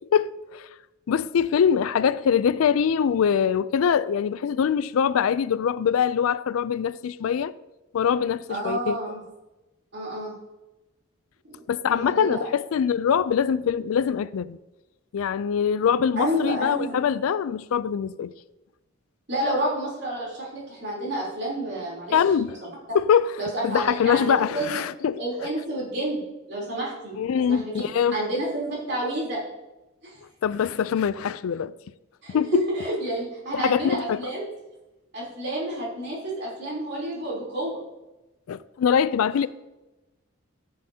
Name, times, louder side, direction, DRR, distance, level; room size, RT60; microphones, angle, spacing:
voice 1, 0.1-0.7 1.1-7.5 7.9-9.0 11.7-14.6 15.1-18.3 22.1-22.6 22.9-23.4 23.6-25.2 27.2-28.2 30.4-31.7 32.3-32.6 33.5-34.2 38.5-39.5, left 7 dB, 80° left, 0.3 m, -23 dB
voice 2, 8.5-9.2 9.9-10.3 11.5-12.4 16.2-17.0 19.3-22.2 23.4-24.8 25.2-27.8 28.1-29.4 30.0-30.2 32.2-34.5 35.1-37.8, right 1 dB, 50° right, 3.4 m, -29 dB
13.5 x 7.7 x 2.8 m
head